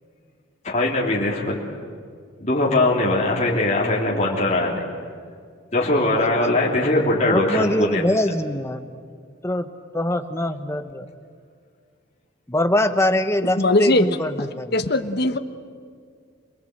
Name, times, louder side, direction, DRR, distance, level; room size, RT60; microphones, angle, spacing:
voice 1, 0.6-1.7 2.4-4.8 5.7-8.0, left 2 dB, 35° left, -4 dB, 3.1 m, -21 dB
voice 2, 7.2-8.9 9.4-11.1 12.5-14.7, left 1 dB, 15° left, 8 dB, 0.9 m, -23 dB
voice 3, 13.4-14.1 14.4-14.5 14.7-15.4, left 2 dB, 50° left, 9 dB, 1.1 m, -20 dB
26.5 x 20.0 x 7.9 m, 2.1 s
head